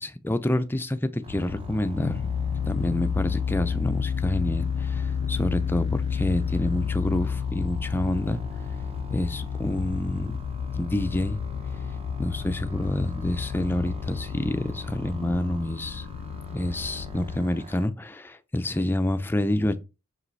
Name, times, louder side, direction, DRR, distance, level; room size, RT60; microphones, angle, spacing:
voice 1, 0.0-2.2 2.7-8.4 9.1-10.3 10.7-11.4 12.2-16.1 16.5-19.8, left 1 dB, 10° left, 0.4 m, -28 dB
sound 1, 1.2-17.9, right 2 dB, 25° right, 0.9 m, -47 dB
sound 2, 1.3-17.4, left 6 dB, 90° left, 0.3 m, -31 dB
6.3 x 4.9 x 3.2 m
head